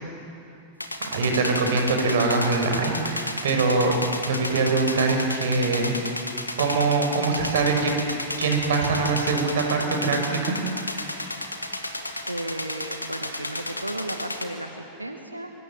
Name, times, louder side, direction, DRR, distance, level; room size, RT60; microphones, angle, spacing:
sound 1, 0.8-14.4, left 1 dB, 85° left, 2.3 m, -33 dB
voice 1, 1.0-4.0 4.3-5.9 6.6-7.9 8.4-10.6, right 3 dB, 60° right, 3 dB, 5.9 m, -23 dB
voice 2, 12.3-15.5, right 1 dB, 85° right, 4 dB, 1.8 m, -34 dB
25.0 x 25.0 x 9.3 m, 2.7 s
figure-of-eight pair, 90°, 0 cm